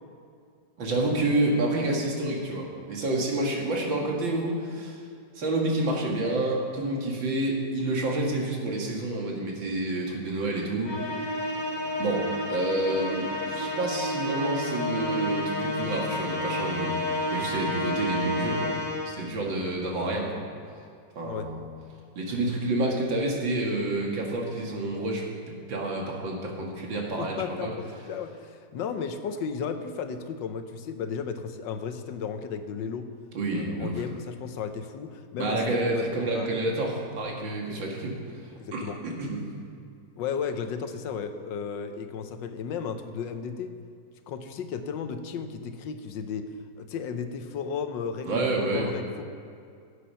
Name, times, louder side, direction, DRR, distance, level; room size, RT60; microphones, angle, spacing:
voice 1, 0.8-5.0 5.4-11.3 12.0-17.0 17.3-18.8 19.0-20.4 21.2-21.6 22.2-27.7 33.3-34.0 35.4-38.2 38.7-39.5 48.2-48.9, right 2 dB, 85° right, -1 dB, 2.7 m, -29 dB
Musical instrument, 10.8-19.3, left 1 dB, 30° left, 1.0 m, -30 dB
voice 2, 27.2-33.1 33.5-36.6 38.6-39.0 40.2-43.7 44.3-49.2, left 6 dB, 75° left, 8 dB, 1.5 m, -34 dB
16.0 x 8.3 x 5.7 m, 2.4 s
omnidirectional pair, 2.0 m